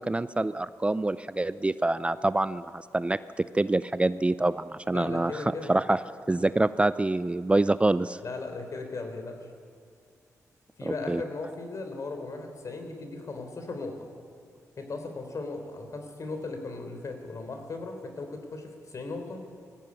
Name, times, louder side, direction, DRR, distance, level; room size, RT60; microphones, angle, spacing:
voice 1, 0.0-3.2 3.5-6.0 6.3-8.2 10.9-11.2, right 2 dB, 20° right, 15 dB, 0.5 m, -26 dB
voice 2, 4.9-5.8 8.2-9.4 10.8-14.1 14.8-19.4, left 3 dB, 55° left, 5 dB, 3.8 m, -37 dB
19.5 x 14.5 x 9.7 m, 2.2 s
cardioid pair, 70°, 6 cm